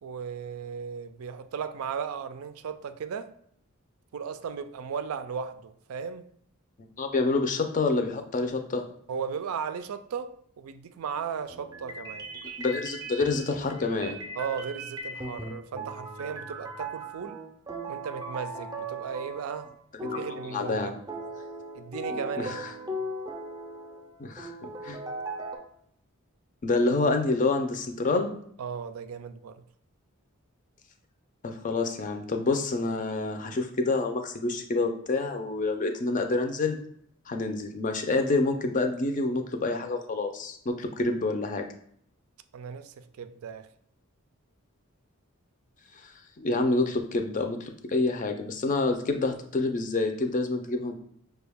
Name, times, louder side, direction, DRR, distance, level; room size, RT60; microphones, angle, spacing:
voice 1, 0.0-3.3 4.1-6.3 9.1-12.3 14.4-17.4 17.9-19.7 20.0-20.9 21.7-22.6 22.9-23.0 28.6-29.6 42.5-43.7, right 6 dB, 75° right, 0.4 m, -36 dB
voice 2, 7.0-8.9 12.6-14.2 20.1-20.2 20.5-20.9 22.4-22.7 24.2-25.0 26.6-28.3 31.4-36.8 37.3-41.7 46.0-46.1 46.4-51.0, left 3 dB, 35° left, 0.5 m, -27 dB
sound 1, 11.5-19.7 20.0-25.6, right 1 dB, 15° right, 0.5 m, -38 dB
5.6 x 2.3 x 3.4 m
head